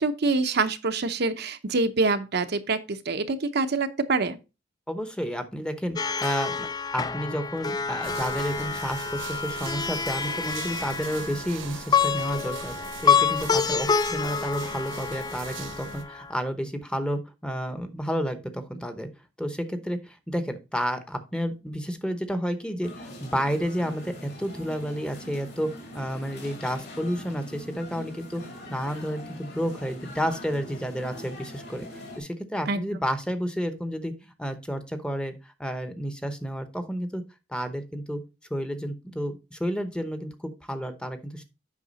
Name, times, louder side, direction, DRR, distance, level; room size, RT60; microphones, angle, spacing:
voice 1, 0.0-4.4 32.7-32.8, right 3 dB, 55° right, 0.7 m, -25 dB
voice 2, 4.9-6.7 6.9-12.7 13.0-19.1 19.4-25.7 25.9-28.4 28.7-31.9 32.2-37.2 37.5-38.2 38.5-41.4, equal, 5° left, 0.9 m, -31 dB
Plucked string instrument, 6.0-16.3, left 6 dB, 20° left, 0.3 m, -28 dB
Rain in Buenos Aires, 8.0-16.0, right 5 dB, 75° right, 1.2 m, -41 dB
sound 1, 22.8-32.2, left 1 dB, 60° left, 3.3 m, -43 dB
8.3 x 5.9 x 4.1 m
head